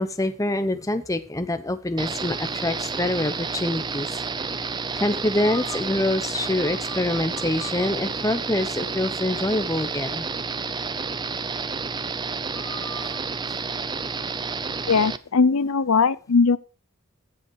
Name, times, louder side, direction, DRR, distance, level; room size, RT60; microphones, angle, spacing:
voice 1, 0.0-4.1 5.0-10.3 12.6-13.2, left 1 dB, 15° left, 0.8 m, -26 dB
sound 1, 2.0-15.2, right 4 dB, 20° right, 0.5 m, -30 dB
voice 2, 14.9-16.6, left 4 dB, 75° left, 0.6 m, -19 dB
15.0 x 7.4 x 4.8 m
head